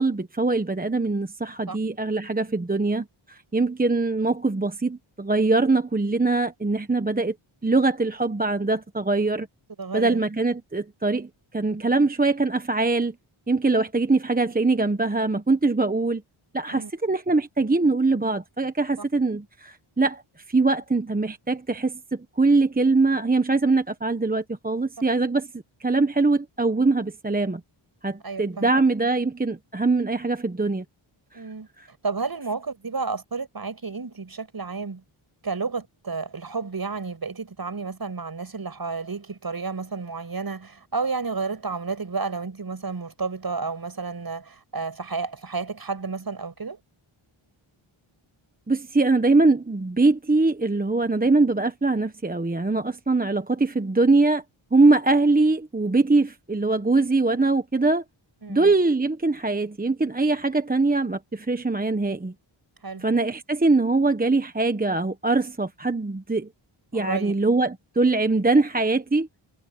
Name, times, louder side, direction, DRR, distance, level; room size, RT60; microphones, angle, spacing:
voice 1, 0.0-7.3 7.6-9.5 9.9-13.1 13.5-16.2 16.5-20.2 20.5-25.5 25.8-27.6 28.0-30.8 31.8-31.9 48.7-54.4 54.7-58.0 58.5-62.3 63.0-66.5 66.9-69.3, right 3 dB, 15° right, 1.1 m, -22 dB
voice 2, 9.8-10.2 16.7-16.9 28.2-28.7 31.3-31.7 32.0-35.0 35.4-46.8 58.4-58.7 62.8-63.1 66.9-67.3, right 4 dB, 45° right, 7.1 m, -31 dB
wide cardioid pair, 85°, 50 cm